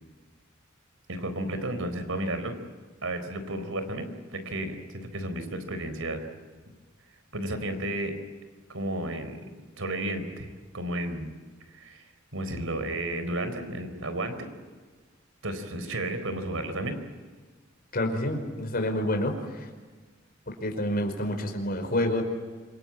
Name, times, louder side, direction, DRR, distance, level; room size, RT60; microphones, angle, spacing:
voice 1, 1.1-2.6 3.0-6.2 7.3-8.1 8.7-9.4 9.8-11.3 11.7-12.0 12.3-14.5 15.4-17.0, right 1 dB, 75° right, 9 dB, 4.2 m, -32 dB
voice 2, 17.9-19.7 20.6-22.2, left 1 dB, 45° left, 4 dB, 5.2 m, -28 dB
27.0 x 24.5 x 8.8 m, 1.4 s
head